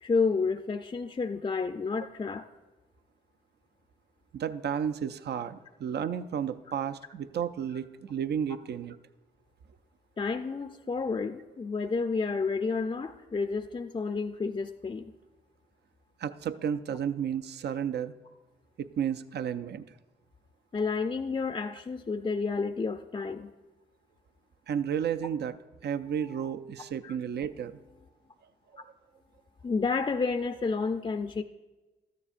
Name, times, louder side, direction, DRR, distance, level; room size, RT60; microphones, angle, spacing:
voice 1, 0.0-2.5 10.2-15.1 20.7-23.5 27.0-27.1 29.6-31.4, left 4 dB, 25° left, 6 dB, 0.4 m, -30 dB
voice 2, 4.3-9.0 16.2-18.1 18.8-19.8 24.7-25.6 25.8-27.8, right 8 dB, 60° right, 12 dB, 0.4 m, -32 dB
13.0 x 9.7 x 2.5 m, 1.2 s
cardioid pair, 55°, 20 cm